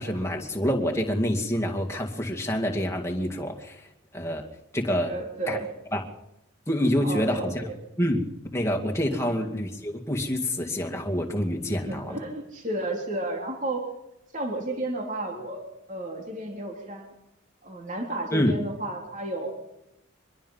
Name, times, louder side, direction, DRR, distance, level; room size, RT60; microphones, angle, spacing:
voice 1, 0.0-3.8 4.1-4.4 4.7-5.1 5.5-5.6 5.9-6.0 6.7-7.5 8.0-8.2 8.5-12.2 18.3-18.5, equal, 15° left, 1 dB, 2.3 m, -27 dB
voice 2, 5.0-5.7 7.0-7.7 9.1-9.4 11.9-13.8 14.3-17.1 17.6-19.5, right 1 dB, 35° right, 1 dB, 3.5 m, -32 dB
25.0 x 22.0 x 5.6 m, 0.88 s
head